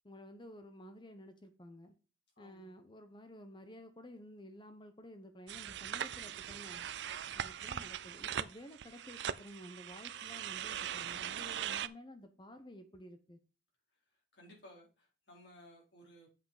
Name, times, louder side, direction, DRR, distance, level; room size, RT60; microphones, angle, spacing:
voice 1, 0.0-1.9 2.4-6.9 7.3-13.4, equal, 25° left, 7 dB, 0.9 m, -52 dB
voice 2, 2.4-2.7 14.3-16.3, equal, 60° left, -2 dB, 4.3 m, -58 dB
sound 1, 5.5-11.9, right 9 dB, 60° right, 0.4 m, -40 dB
7.6 x 5.9 x 4.9 m, 0.32 s
head